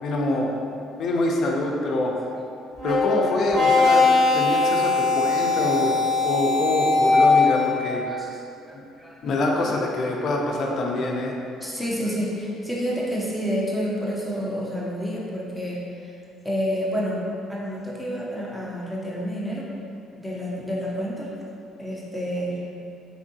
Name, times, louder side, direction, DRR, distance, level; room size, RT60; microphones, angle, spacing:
voice 1, 0.0-0.5 1.0-2.1 2.8-4.1 4.3-5.9 6.2-8.0 8.7-8.8 9.2-11.4, left 2 dB, 50° left, 0 dB, 0.5 m, -25 dB
sound 1, 2.8-7.9, left 3 dB, 80° right, 1.1 m, -20 dB
voice 2, 8.1-9.7 11.6-16.2 16.4-19.7 20.2-21.3 21.8-22.6, equal, ahead, -5 dB, 0.6 m, -29 dB
3.5 x 3.5 x 2.7 m, 2.6 s
cardioid pair, 140°, 0 cm